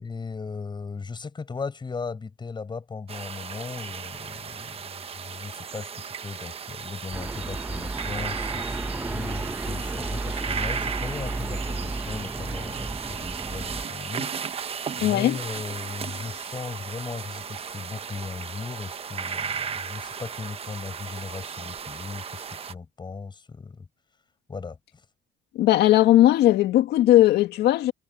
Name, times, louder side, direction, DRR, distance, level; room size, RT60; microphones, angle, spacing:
voice 1, 0.0-23.9 24.5-24.8, left 4 dB, 25° left, 7.2 m, -37 dB
sound 1, 3.1-22.7, right 6 dB, 35° right, 1.1 m, -35 dB
sound 2, 7.1-13.9, right 2 dB, 10° right, 0.8 m, -33 dB
voice 2, 15.0-15.4 25.6-27.9, left 14 dB, 75° left, 2.1 m, -18 dB
cardioid pair, 110°, 17 cm